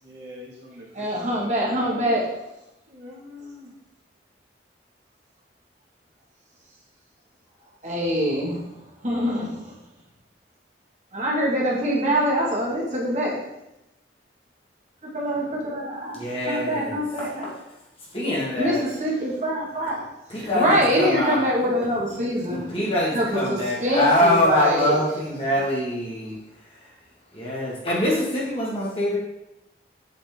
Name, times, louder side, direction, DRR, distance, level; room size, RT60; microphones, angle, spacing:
voice 1, 0.0-1.9 2.9-3.7, left 1 dB, 70° right, -6 dB, 2.2 m, -43 dB
voice 2, 0.9-2.3 7.8-8.6 9.0-9.7 11.1-13.4 15.1-16.2 16.5-17.5 18.6-20.1 20.4-22.8 23.1-25.0, equal, 40° right, -4 dB, 1.7 m, -24 dB
voice 3, 16.1-17.6 18.1-18.8 20.3-21.5 22.2-26.4 26.7-26.8 27.3-29.2, left 1 dB, 30° left, -5 dB, 1.7 m, -24 dB
8.2 x 4.3 x 3.6 m, 0.90 s
head